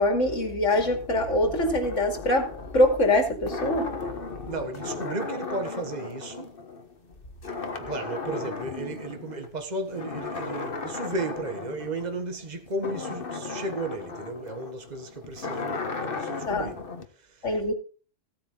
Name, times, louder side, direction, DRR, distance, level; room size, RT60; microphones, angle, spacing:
voice 1, 0.0-3.9 16.5-16.7 17.4-17.7, left 1 dB, 80° left, 3.1 m, -24 dB
sound 1, 0.7-7.1 7.4-9.5 9.9-17.0, left 4 dB, 45° left, 1.6 m, -36 dB
voice 2, 4.5-6.5 7.8-16.8, right 2 dB, 35° right, 1.7 m, -34 dB
16.5 x 8.7 x 3.9 m
omnidirectional pair, 1.3 m